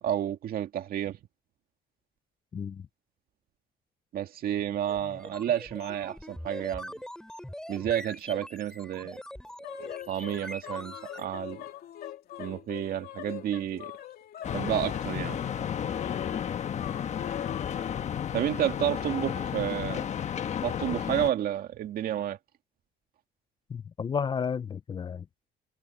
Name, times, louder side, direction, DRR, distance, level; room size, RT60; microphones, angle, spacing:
voice 1, 0.0-1.2 4.1-6.9 7.7-9.2 10.1-11.6 12.4-13.9 14.5-15.4 18.3-20.0 20.6-22.4, right 11 dB, 60° right, 2.1 m, -30 dB
voice 2, 2.5-2.9 16.7-16.8 23.7-25.3, left 6 dB, 25° left, 0.4 m, -32 dB
sound 1, 4.9-11.3, left 1 dB, 5° left, 3.7 m, -43 dB
sound 2, 9.6-18.0, left 12 dB, 65° left, 2.7 m, -42 dB
sound 3, 14.4-21.3, left 8 dB, 45° left, 1.1 m, -32 dB
cardioid pair, 110°, 17 cm